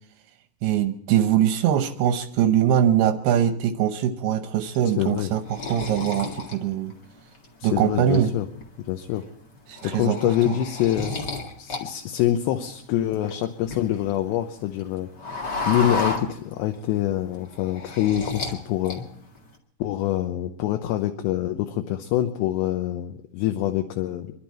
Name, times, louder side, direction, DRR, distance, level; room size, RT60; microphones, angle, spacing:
voice 1, 0.6-6.9 7.6-8.3 9.7-10.2 10.5-10.6, right 10 dB, 75° right, 8 dB, 2.6 m, -22 dB
sound 1, 4.7-7.5 7.9-8.6 9.0-9.2 9.5-11.8 12.1-14.2 14.5-16.8 17.2-18.6 18.8-19.5, left 3 dB, 45° left, 1.4 m, -32 dB
voice 2, 5.0-5.3 7.6-8.5 8.9-9.2 9.8-11.1 11.6-15.1 15.7-19.0 19.8-24.3, left 12 dB, 80° left, 5 dB, 3.0 m, -25 dB
27.0 x 12.0 x 4.4 m, 0.69 s
omnidirectional pair, 5.1 m